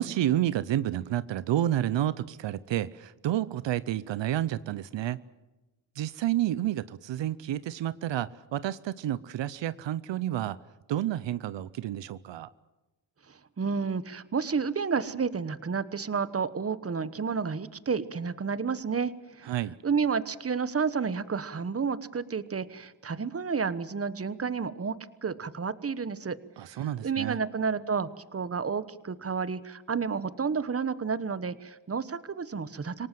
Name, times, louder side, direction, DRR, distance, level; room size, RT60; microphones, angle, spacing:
voice 1, 0.0-5.2 6.0-10.6 10.9-12.5 19.5-19.7 26.6-27.4, right 12 dB, 80° right, 17 dB, 0.7 m, -30 dB
voice 2, 13.6-19.1 19.4-19.5 19.8-24.9 25.2-26.4 26.7-33.1, right 5 dB, 30° right, 15 dB, 1.2 m, -30 dB
27.0 x 18.0 x 7.6 m, 1.1 s
cardioid pair, 80°, 43 cm